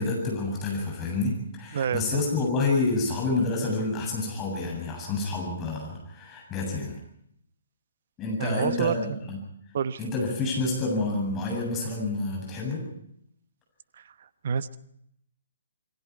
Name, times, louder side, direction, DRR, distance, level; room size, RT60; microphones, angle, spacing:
voice 1, 0.0-7.0 8.2-9.4 10.0-12.8, left 3 dB, 20° left, -1 dB, 7.7 m, -28 dB
voice 2, 1.7-2.2 8.4-9.3 9.7-10.0 14.0-14.1 14.4-14.8, right 7 dB, 50° right, 14 dB, 1.1 m, -28 dB
28.0 x 23.0 x 4.8 m, 0.72 s
figure-of-eight pair, 130°, 0 cm